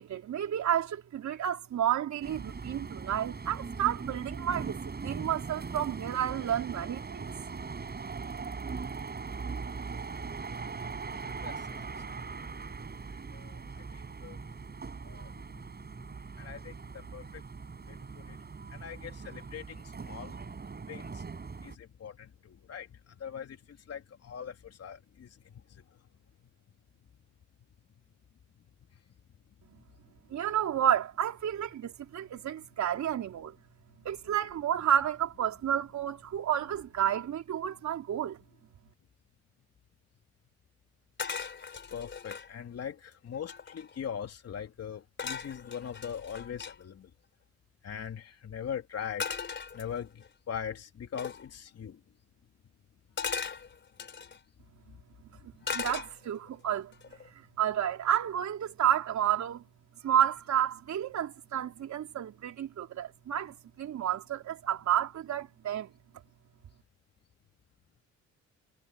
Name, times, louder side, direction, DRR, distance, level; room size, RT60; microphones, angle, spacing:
voice 1, 0.0-7.3 30.3-33.6 34.0-38.4 54.9-55.0 55.4-56.9 57.6-59.6 60.0-65.9, right 10 dB, 65° right, 4.2 m, -31 dB
sound 1, 2.2-21.8, right 4 dB, 35° right, 5.9 m, -40 dB
voice 2, 11.0-12.6 13.1-14.4 15.0-15.6 16.0-16.1 16.4-17.4 17.9-18.4 18.7-20.4 20.9-21.2 21.6-25.3 25.7-25.8 41.9-47.1 47.8-49.3 49.7-52.0, left 8 dB, 55° left, 3.3 m, -42 dB
sound 2, 41.2-42.5 43.1-43.2 43.4-44.0 45.2-46.7 49.2-50.3 51.2-51.4 53.2-54.4 55.6-56.5 56.9-57.3, left 6 dB, 40° left, 3.8 m, -38 dB
cardioid pair, 90°, 30 cm